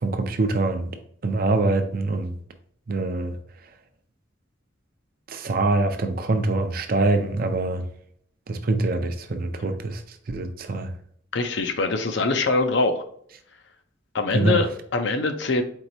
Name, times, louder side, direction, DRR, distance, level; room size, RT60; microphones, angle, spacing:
voice 1, 0.0-0.9 1.2-2.4 2.9-3.4 5.3-7.9 8.5-10.9 14.3-14.6, right 2 dB, 45° right, 0.5 m, -24 dB
voice 2, 11.3-13.0 14.1-15.6, left 3 dB, 60° left, 0.6 m, -23 dB
4.5 x 4.0 x 2.7 m
head